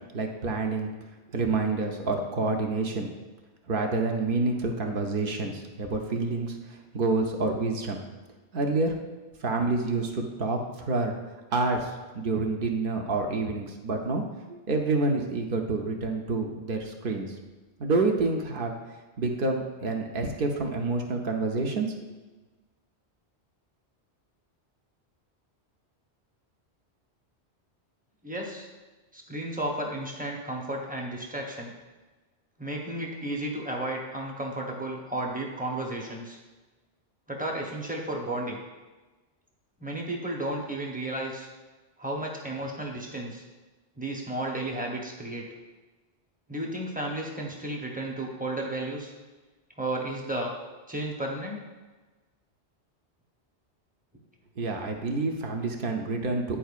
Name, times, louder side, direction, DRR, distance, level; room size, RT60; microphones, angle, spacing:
voice 1, 0.1-0.9 1.3-3.1 3.7-8.0 8.5-8.9 9.4-11.1 11.5-14.2 14.5-17.3 17.8-18.7 19.2-21.9 54.6-56.6, right 3 dB, 60° right, 2 dB, 0.8 m, -28 dB
voice 2, 28.2-28.7 29.1-31.7 32.6-36.4 37.3-38.6 39.8-41.5 42.0-43.4 44.0-45.4 46.5-49.1 49.8-50.5 50.9-51.6, right 1 dB, 10° right, -1 dB, 0.7 m, -33 dB
10.0 x 4.5 x 2.4 m, 1.2 s
omnidirectional pair, 1.1 m